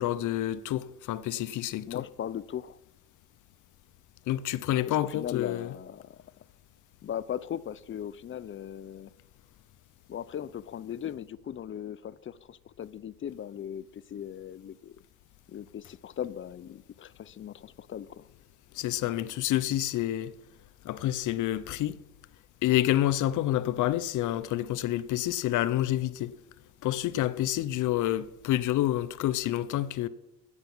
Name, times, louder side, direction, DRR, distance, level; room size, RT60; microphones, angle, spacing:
voice 1, 0.0-2.0 4.3-5.7 18.7-20.3 20.8-22.0 22.6-26.3 26.8-30.1, left 13 dB, 80° left, 0.7 m, -28 dB
voice 2, 1.9-2.8 4.9-6.2 7.0-9.1 10.1-15.0 15.5-18.3, left 9 dB, 40° left, 0.5 m, -38 dB
9.1 x 8.1 x 7.1 m
cardioid pair, 90°, 30 cm